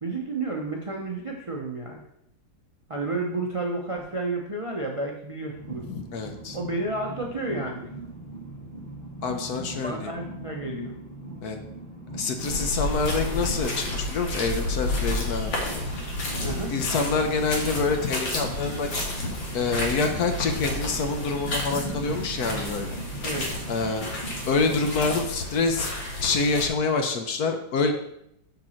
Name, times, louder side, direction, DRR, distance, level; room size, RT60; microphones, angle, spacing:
voice 1, 0.0-2.0 2.9-5.8 6.5-7.9 9.7-10.9 16.4-16.7 23.2-23.6, right 2 dB, 45° right, 0 dB, 0.4 m, -31 dB
Train, 5.5-25.3, right 2 dB, 25° left, 2.0 m, -39 dB
voice 2, 5.8-6.6 9.2-10.1 11.4-11.6 12.1-15.6 16.7-18.9 19.5-23.0 23.7-24.0 24.5-25.9 26.2-27.9, left 4 dB, 65° left, 6 dB, 1.2 m, -26 dB
sound 1, 12.4-26.7, left 1 dB, 85° left, 2.4 m, -31 dB
6.8 x 6.1 x 4.3 m, 0.75 s
omnidirectional pair, 2.0 m